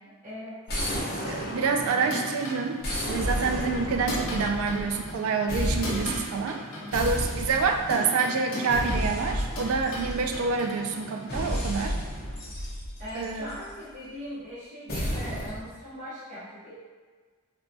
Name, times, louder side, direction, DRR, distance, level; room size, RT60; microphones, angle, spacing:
voice 1, 0.2-0.6 6.7-7.3 13.0-16.8, equal, 35° right, -10 dB, 0.7 m, -40 dB
sound 1, 0.7-2.3 2.8-5.2 5.5-6.3 6.9-8.0 8.7-10.6 11.3-13.7 14.9-15.6, equal, 45° left, 0.6 m, -32 dB
voice 2, 1.2-2.8 3.1-6.6 6.9-12.0 13.2-13.5, right 4 dB, 70° right, 5 dB, 0.3 m, -27 dB
sound 2, 1.4-12.3, equal, 75° left, 1.0 m, -38 dB
3.2 x 2.1 x 2.6 m, 1.5 s
head